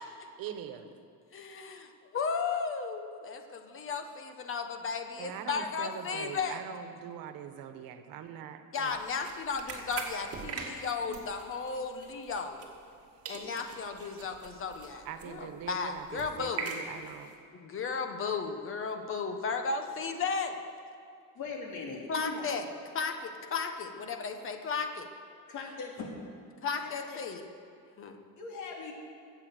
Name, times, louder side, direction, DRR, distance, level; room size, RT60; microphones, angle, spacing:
voice 1, 0.4-0.9 5.2-8.9 10.5-10.8 15.0-17.3, right 9 dB, 90° right, 8 dB, 1.3 m, -42 dB
voice 2, 1.3-6.6 8.7-12.6 13.3-16.7 17.6-20.6 22.1-22.6 22.9-25.1 26.6-27.4 28.0-28.2, left 5 dB, 40° left, 6 dB, 1.3 m, -34 dB
sound 1, 8.8-13.0 13.2-17.3, right 4 dB, 45° right, 2.3 m, -43 dB
voice 3, 21.3-22.6 25.5-26.1 26.8-27.2 28.3-28.9, left 4 dB, 60° left, -1 dB, 3.1 m, -40 dB
23.0 x 8.4 x 6.6 m, 2.4 s
cardioid pair, 165°, 34 cm